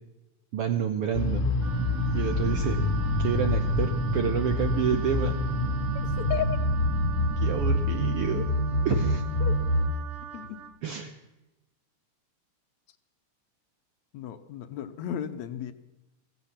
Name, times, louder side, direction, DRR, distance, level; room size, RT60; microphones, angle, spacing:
voice 1, 0.5-1.5 2.1-2.8 3.2-5.3 7.4-8.5 8.8-9.2 10.8-11.2, right 8 dB, 70° right, 7 dB, 1.4 m, -28 dB
sound 1, 1.1-9.9, left 1 dB, 35° left, 1.4 m, -26 dB
Wind instrument woodwind instrument, 1.6-10.8, right 7 dB, 55° right, 1.8 m, -42 dB
voice 2, 5.9-6.6 8.9-9.0 9.4-9.7 10.3-10.6 14.1-15.7, left 10 dB, 70° left, 10 dB, 2.0 m, -34 dB
15.5 x 15.5 x 5.8 m, 0.97 s
omnidirectional pair, 3.6 m